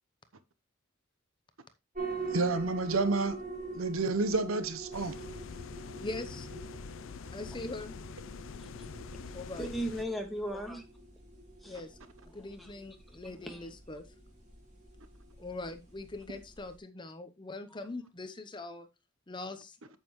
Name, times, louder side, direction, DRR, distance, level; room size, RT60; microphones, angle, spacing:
sound 1, 1.9-16.8, right 3 dB, 35° right, 5.2 m, -44 dB
voice 1, 2.2-3.4 3.7-5.2, right 3 dB, 75° right, 0.9 m, -30 dB
sound 2, 4.9-10.0, left 5 dB, 65° left, 0.5 m, -45 dB
voice 2, 6.0-6.5 7.3-8.0 9.3-9.7 11.7-12.0 12.3-14.0 15.4-18.9 19.3-19.8, left 2 dB, 20° left, 0.8 m, -42 dB
voice 3, 9.1-10.9 11.6-11.8 12.6-12.7 13.4-13.7 17.7-17.8, equal, ahead, 1.8 m, -37 dB
9.0 x 7.6 x 3.1 m
head